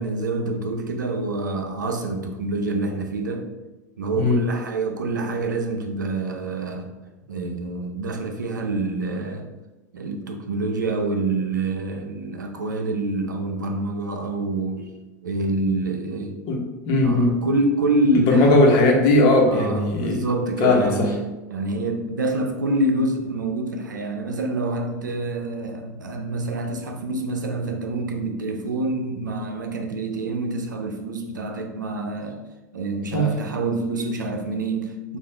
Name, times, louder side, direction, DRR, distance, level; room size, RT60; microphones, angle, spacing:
voice 1, 0.0-3.5 4.0-6.9 7.3-9.5 9.9-14.9 15.2-16.4 17.0-18.5 19.5-21.2 21.5-32.4 32.7-35.2, right 2 dB, 85° right, 5 dB, 0.6 m, -26 dB
voice 2, 16.5-17.3 18.1-20.2 20.6-21.1 33.1-33.3, left 2 dB, 50° left, 0 dB, 1.1 m, -18 dB
5.1 x 2.6 x 3.3 m, 1.1 s
hypercardioid pair, 90°, 10 cm